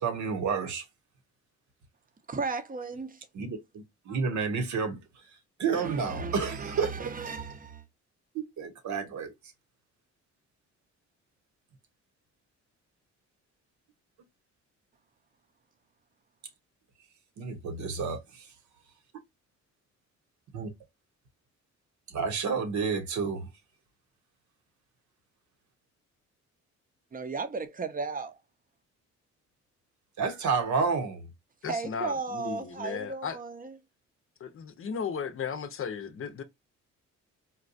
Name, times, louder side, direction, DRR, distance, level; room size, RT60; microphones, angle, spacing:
voice 1, 0.0-0.8 3.3-5.0 5.6-6.9 8.3-9.3 17.4-18.4 20.5-20.7 22.1-23.5 30.2-31.3, right 5 dB, 70° right, 0.9 m, -30 dB
voice 2, 2.3-3.3 5.7-7.8 27.1-28.4 31.7-33.7, right 4 dB, 30° right, 0.6 m, -35 dB
voice 3, 31.6-33.4 34.4-36.4, left 6 dB, 45° left, 0.6 m, -35 dB
4.0 x 2.2 x 2.5 m
cardioid pair, 90°, 30 cm